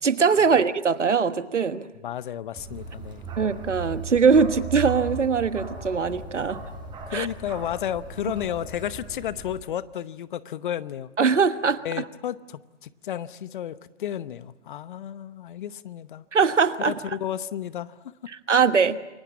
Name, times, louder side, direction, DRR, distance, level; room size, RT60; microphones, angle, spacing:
voice 1, 0.0-1.9 3.4-6.6 7.1-7.3 11.2-12.0 16.3-16.9 18.5-19.0, right 5 dB, 80° right, 12 dB, 1.4 m, -21 dB
voice 2, 2.0-3.2 7.1-11.2 11.8-16.2 16.8-18.0, left 10 dB, 45° left, 17 dB, 0.9 m, -32 dB
Bark, 2.6-9.6, right 4 dB, 10° right, 4.9 m, -37 dB
28.0 x 22.0 x 7.4 m, 1.0 s
figure-of-eight pair, 125°, 36 cm